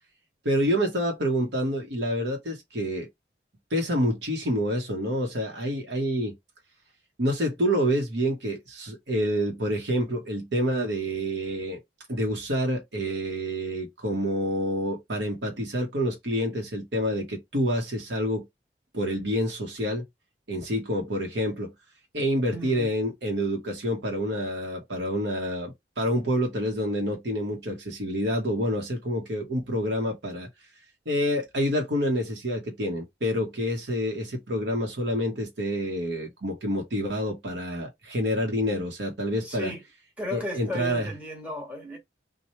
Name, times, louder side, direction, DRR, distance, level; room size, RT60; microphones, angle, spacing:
voice 1, 0.4-3.1 3.7-6.3 7.2-11.8 12.1-18.5 18.9-20.0 20.5-21.7 22.1-30.5 31.1-39.7 40.3-41.1, equal, 75° right, 1.0 m, -28 dB
voice 2, 22.5-22.9 39.4-39.8 40.2-42.0, left 1 dB, 10° right, 1.5 m, -35 dB
3.0 x 2.2 x 4.2 m
head